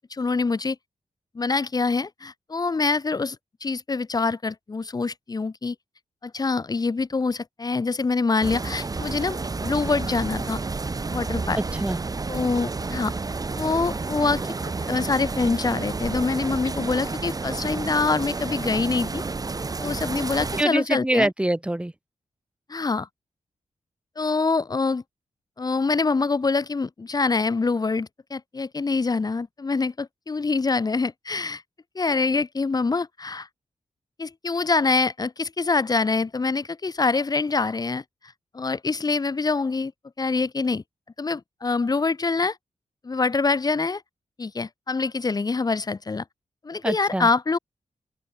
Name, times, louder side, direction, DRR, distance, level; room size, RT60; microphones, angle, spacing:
voice 1, 0.1-0.8 1.3-3.4 3.6-5.7 6.2-10.6 11.1-11.6 12.3-13.1 13.6-14.5 14.9-19.2 19.8-21.3 22.7-23.1 24.2-25.0 25.6-31.6 31.9-33.5 34.2-38.0 38.5-39.9 40.2-40.8 41.2-42.6 43.0-44.0 44.4-46.2 46.6-47.6, left 4 dB, 30° left, 2.5 m, -25 dB
sound 1, 8.4-20.6, right 3 dB, 30° right, 7.8 m, -30 dB
voice 2, 11.5-12.0 20.6-21.9 46.8-47.3, right 1 dB, 10° right, 3.3 m, -24 dB
open air
wide cardioid pair, 155°, 12 cm